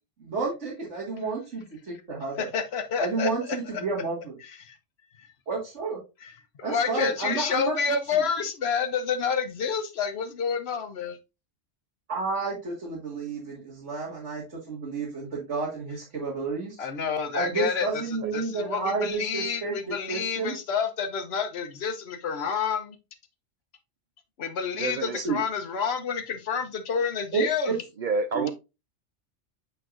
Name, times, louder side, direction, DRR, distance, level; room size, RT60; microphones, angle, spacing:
voice 1, 0.2-2.5 3.0-4.4 5.5-6.0 6.6-7.7 8.1-8.2 12.1-16.8 17.3-20.5 25.1-25.4 27.3-27.8 28.3-28.5, right 4 dB, 75° right, -6 dB, 2.2 m, -30 dB
voice 2, 2.4-3.8 4.4-4.7 6.2-6.3 6.7-11.2 16.8-18.0 18.3-23.0 24.4-27.7, left 6 dB, 60° left, 7 dB, 1.1 m, -29 dB
voice 3, 24.7-25.2 28.0-28.5, right 4 dB, 60° right, 9 dB, 0.5 m, -28 dB
8.3 x 4.5 x 2.5 m, 0.26 s
omnidirectional pair, 1.2 m